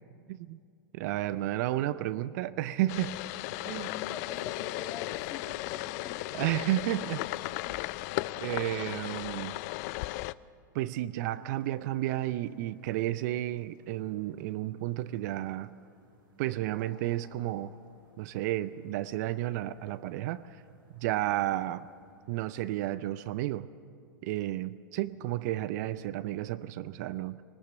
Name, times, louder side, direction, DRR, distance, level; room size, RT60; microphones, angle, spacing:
voice 1, 0.9-3.2 3.7-3.9 6.3-7.3 8.4-9.6 10.7-15.7 16.4-17.7 18.2-20.5 20.9-21.9 22.3-23.7 24.2-27.4, right 15 dB, 55° right, 15 dB, 0.5 m, -32 dB
sound 1, 2.9-10.3, left 19 dB, 50° left, 0.4 m, -36 dB
voice 2, 3.8-6.3, left 5 dB, 25° left, 4 dB, 2.2 m, -45 dB
sound 2, 11.1-22.4, right 3 dB, 80° right, 6.0 m, -63 dB
21.5 x 19.5 x 6.8 m, 2.4 s
hypercardioid pair, 110°, 11 cm